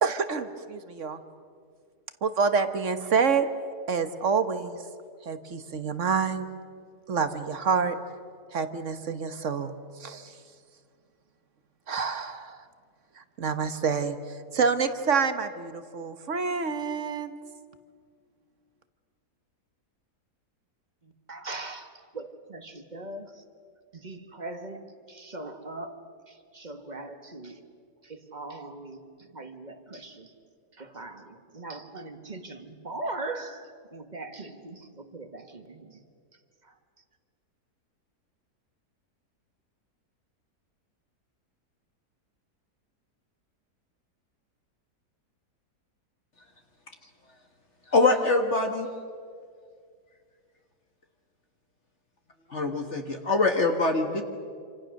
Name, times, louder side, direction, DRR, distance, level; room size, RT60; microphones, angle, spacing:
voice 1, 0.0-1.2 2.2-3.5 3.9-4.8 5.2-6.5 7.1-8.0 8.5-10.3 11.9-12.6 13.2-14.2 14.5-17.4, right 5 dB, 50° right, 10 dB, 1.4 m, -27 dB
voice 2, 21.0-23.4 23.9-26.0 26.3-27.7 28.0-30.3 30.8-36.0 36.6-36.7, right 2 dB, 30° right, 7 dB, 1.6 m, -40 dB
voice 3, 47.9-48.9 52.5-54.2, left 3 dB, 45° left, 4 dB, 1.7 m, -24 dB
27.0 x 26.5 x 6.5 m, 2.2 s
omnidirectional pair, 1.7 m